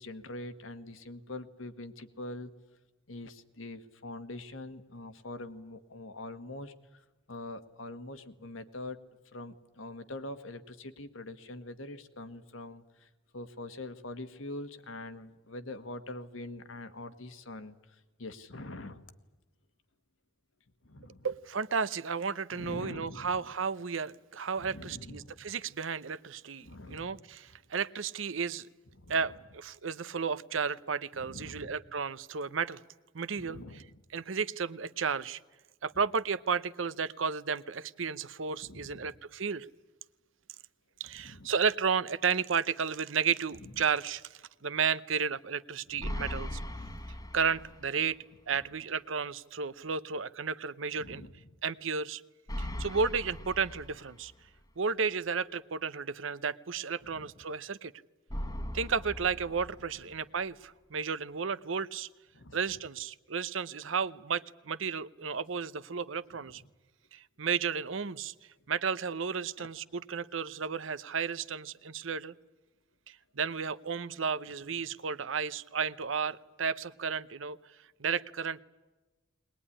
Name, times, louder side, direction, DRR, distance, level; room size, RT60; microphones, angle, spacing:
voice 1, 0.0-2.5 3.1-7.0 7.3-9.0 9.3-19.1 20.8-21.3 22.5-23.4 24.6-25.5 26.6-27.2 29.0-29.2 31.1-31.8 33.4-33.9 38.6-39.1 41.2-41.5 45.9-46.4 51.0-51.3 57.1-57.3 62.3-62.6 69.6-69.7, left 2 dB, 85° left, 8 dB, 1.6 m, -44 dB
voice 2, 21.2-28.7 29.1-32.8 33.1-33.8 34.1-35.4 35.8-39.7 41.0-46.6 47.3-48.2 48.5-51.2 51.6-52.2 52.6-54.3 54.8-57.9 58.7-62.1 62.5-66.6 67.1-68.3 68.7-72.3 73.1-77.6 78.0-78.6, right 6 dB, 75° right, 16 dB, 0.8 m, -33 dB
sound 1, 46.0-48.0 48.4-48.5 52.5-54.5 58.3-60.3, left 1 dB, 20° left, 1.1 m, -39 dB
21.5 x 20.0 x 10.0 m, 1.2 s
head